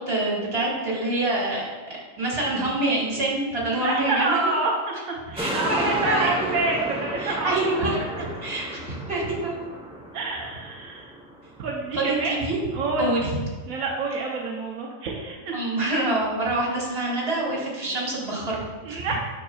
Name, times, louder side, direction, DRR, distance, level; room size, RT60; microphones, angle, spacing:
voice 1, 0.1-1.6 2.2-4.5 5.3-6.5 7.2-9.5 11.9-12.6 13.0-13.3 15.5-19.1, right 2 dB, 50° right, -4 dB, 2.5 m, -26 dB
voice 2, 3.7-8.2 10.1-11.1 11.6-12.3 12.7-13.1 13.7-15.5 18.8-19.1, right 3 dB, 85° right, -2 dB, 1.2 m, -28 dB
sound 1, 5.4-12.0 12.4-12.5, right 1 dB, 5° right, 0.9 m, -33 dB
9.1 x 6.6 x 2.4 m, 1.3 s
omnidirectional pair, 1.4 m